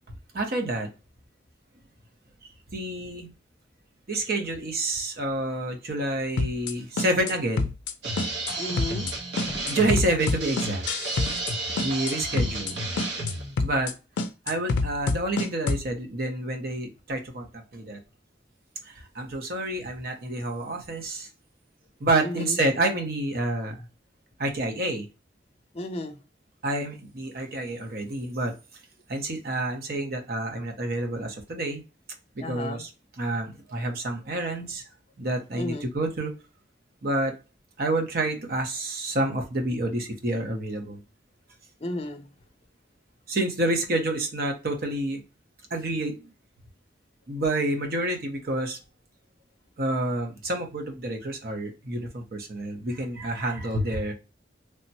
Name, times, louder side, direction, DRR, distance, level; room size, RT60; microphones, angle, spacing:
voice 1, 0.3-0.9 2.7-3.3 4.1-7.7 9.7-10.8 11.8-12.8 13.6-13.9 14.5-17.5 17.7-18.0 18.8-21.3 22.0-23.9 24.4-25.1 26.6-28.5 29.1-31.8 32.4-32.9 33.2-34.8 35.2-36.3 37.0-37.3 37.8-41.0 43.3-45.2 45.7-46.3 47.3-48.8 49.8-54.1, right 1 dB, 55° right, 4 dB, 0.7 m, -28 dB
sound 1, 6.4-6.7 7.0-7.3 7.6-7.9 8.2-8.5 8.8-9.1 9.4-11.5 11.8-12.1 12.4-12.7 13.0-13.3 13.6-13.9 14.2-15.9, left 3 dB, 90° left, 0.4 m, -27 dB
sound 2, 8.0-13.6, right 2 dB, 80° right, 0.9 m, -32 dB
voice 2, 8.6-9.1 9.4-9.6 22.2-22.6 25.7-26.2 32.4-32.8 35.6-35.9 41.8-42.3, left 1 dB, 35° left, 6 dB, 0.5 m, -33 dB
3.3 x 2.1 x 2.7 m, 0.30 s
head